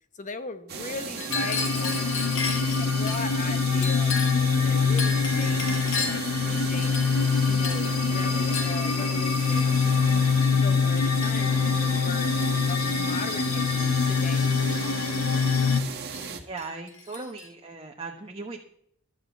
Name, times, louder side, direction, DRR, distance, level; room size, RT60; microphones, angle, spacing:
voice 1, 0.1-5.6 5.9-6.9 7.5-9.7 10.5-12.3 12.7-14.5, left 3 dB, 35° left, 11 dB, 1.0 m, -39 dB
sound 1, 0.7-16.4, right 5 dB, 50° right, 1.7 m, -36 dB
Chink clink, 1.2-3.2 3.8-4.5 5.0-6.3 6.8-7.3 7.6-7.9 8.5-8.8 9.5-9.7 10.4-10.6 11.0-11.7 12.4-13.0 13.3-13.7 14.7-15.4 16.1-16.3 16.6-17.5, left 4 dB, 60° left, 3.0 m, -34 dB
sound 2, 1.3-15.8, left 5 dB, 80° left, 0.9 m, -24 dB
voice 2, 16.4-18.6, right 3 dB, 25° right, 1 dB, 1.1 m, -38 dB
12.5 x 6.6 x 8.3 m, 0.68 s
head